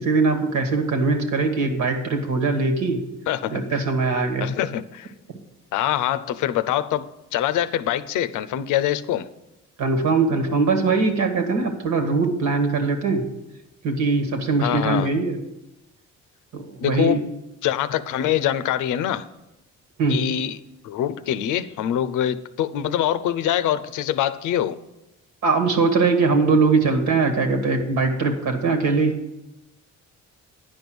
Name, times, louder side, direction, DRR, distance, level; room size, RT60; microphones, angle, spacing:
voice 1, 0.0-3.0 3.5-4.5 9.8-13.3 13.8-15.4 16.5-17.2 20.0-20.2 25.4-29.1, right 4 dB, 70° right, 6 dB, 1.8 m, -21 dB
voice 2, 3.3-3.8 4.4-5.1 5.7-9.3 14.6-15.1 16.8-17.2 17.6-19.3 20.1-20.6 20.8-24.8, left 11 dB, 85° left, 12 dB, 0.6 m, -24 dB
10.0 x 5.4 x 7.8 m, 0.92 s
cardioid pair, 90°, 30 cm